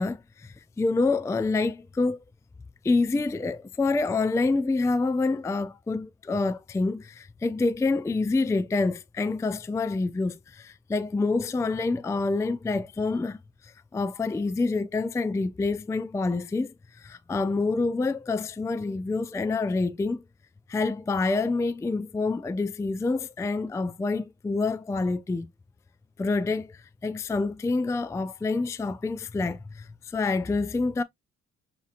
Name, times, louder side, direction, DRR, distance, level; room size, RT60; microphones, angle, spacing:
voice 1, 0.0-2.2 2.8-13.4 13.6-20.2 20.7-25.5 26.2-31.0, left 3 dB, 10° left, 0.4 m, -27 dB
6.6 x 2.9 x 2.4 m
cardioid pair, 90°, 30 cm